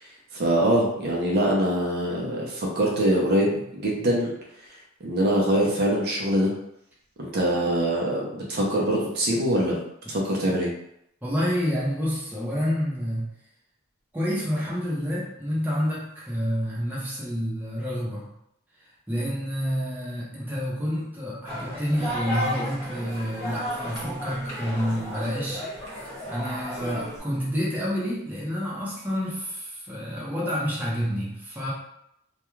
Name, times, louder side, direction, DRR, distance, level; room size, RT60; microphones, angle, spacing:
voice 1, 0.3-4.3 5.0-6.5 7.2-9.8 10.1-10.7, right 1 dB, 50° right, -3 dB, 0.5 m, -23 dB
voice 2, 11.2-13.3 14.1-18.3 19.1-25.6 26.3-31.7, equal, 10° right, -6 dB, 0.6 m, -28 dB
sound 1, 21.5-27.2, equal, 15° left, 1.3 m, -33 dB
2.3 x 2.2 x 3.0 m, 0.78 s
head